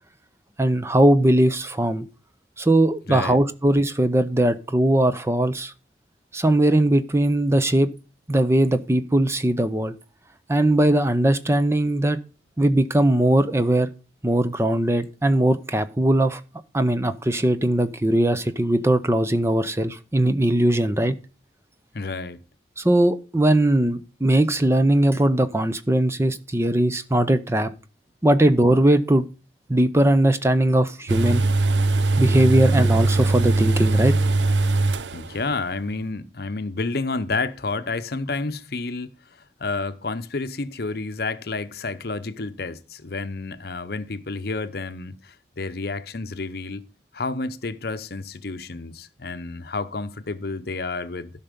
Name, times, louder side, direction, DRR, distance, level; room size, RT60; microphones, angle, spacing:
voice 1, 0.6-2.0 2.6-5.7 6.3-7.9 8.3-9.9 10.5-12.2 12.6-13.9 14.2-16.4 16.7-21.2 22.8-27.7 28.2-29.3 29.7-31.4 32.2-34.1, right 1 dB, 15° right, 0.6 m, -20 dB
voice 2, 3.1-3.4 21.9-22.4 32.6-32.8 35.1-46.8 47.1-51.3, left 3 dB, 55° left, 0.8 m, -30 dB
sound 1, 31.1-35.5 35.8-35.9, right 2 dB, 75° right, 0.7 m, -21 dB
12.5 x 5.7 x 5.1 m
head